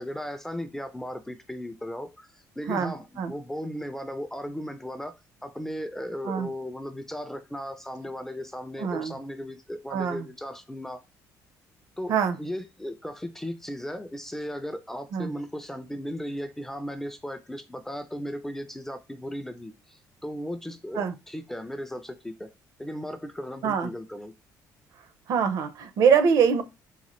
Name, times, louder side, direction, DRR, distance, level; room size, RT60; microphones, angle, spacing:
voice 1, 0.0-2.3 2.6-5.1 5.4-11.0 12.0-22.5 22.8-24.3, equal, 5° left, 0.3 m, -36 dB
voice 2, 2.7-3.3 6.3-6.5 8.8-9.2 9.9-10.3 12.1-12.4 15.1-15.3 20.9-21.1 23.6-23.9 25.3-26.6, right 6 dB, 60° right, 0.6 m, -24 dB
3.9 x 2.4 x 3.0 m
cardioid pair, 145°, 7 cm